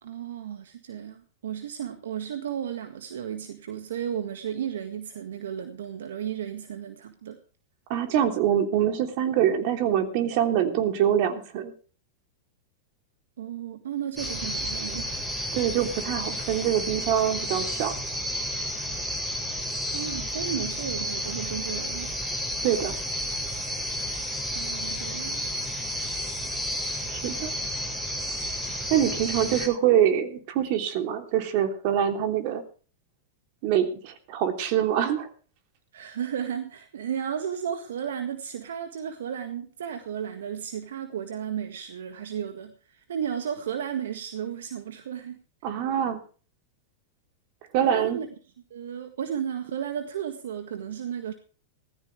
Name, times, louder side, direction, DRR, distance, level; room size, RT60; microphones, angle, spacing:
voice 1, 0.0-7.4 13.4-15.2 19.9-22.1 24.5-25.4 29.2-29.4 35.9-45.4 47.8-48.3 48.7-51.3, right 9 dB, 80° right, 8 dB, 1.7 m, -34 dB
voice 2, 7.9-11.7 15.5-17.9 22.6-22.9 27.1-27.5 28.9-32.6 33.6-35.3 45.6-46.2 47.7-48.2, right 10 dB, 55° right, 7 dB, 3.1 m, -24 dB
sound 1, 14.2-29.7, equal, 10° right, 7.6 m, -31 dB
17.5 x 15.0 x 3.4 m, 0.38 s
hypercardioid pair, 110°, 0 cm